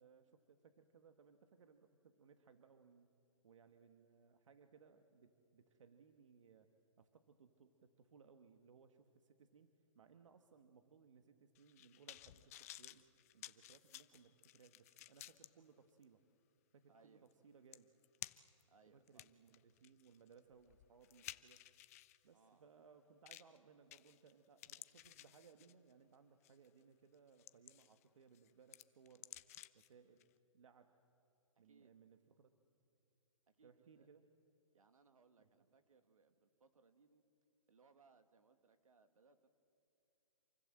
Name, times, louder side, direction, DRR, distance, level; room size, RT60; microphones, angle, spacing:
voice 1, 0.0-3.1 3.4-6.7 7.0-13.1 13.3-16.2 16.7-17.9 18.9-21.6 22.2-29.3 29.7-30.3 30.5-31.0 31.6-32.5 33.6-34.3, right 6 dB, 65° right, 7 dB, 1.5 m, -65 dB
sound 1, 11.5-15.5 16.0-16.1 17.3-17.4 17.7-18.6 19.1-22.2 23.3-23.6 23.9-24.3 24.6-25.9 26.4-26.7 27.1-28.0 28.3-29.9 30.2-30.3, left 14 dB, 25° left, 0.5 m, -55 dB
voice 2, 16.9-17.3 18.7-19.2 22.3-22.7 31.6-31.9 33.5-34.1 34.7-37.2 37.7-39.5, right 4 dB, 80° right, 8 dB, 2.3 m, -70 dB
27.0 x 24.0 x 7.7 m, 2.8 s
hypercardioid pair, 155°, 17 cm